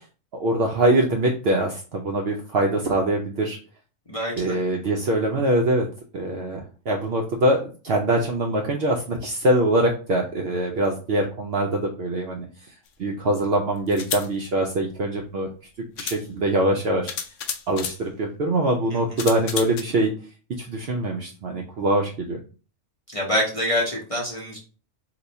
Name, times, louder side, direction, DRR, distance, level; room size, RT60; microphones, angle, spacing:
voice 1, 0.4-3.6 4.4-5.9 6.1-12.5 13.0-15.5 16.0-17.1 17.7-20.1 20.6-22.4, right 1 dB, 65° right, 0 dB, 0.6 m, -23 dB
voice 2, 4.1-4.5 18.9-19.2 23.1-24.6, left 1 dB, 35° left, -3 dB, 0.6 m, -26 dB
sound 1, 12.9-13.0 13.9-14.3 15.4-15.5 16.0-16.2 17.1-18.0 19.2-19.8, left 7 dB, 70° left, 0.8 m, -31 dB
3.0 x 2.2 x 3.9 m, 0.37 s
omnidirectional pair, 1.4 m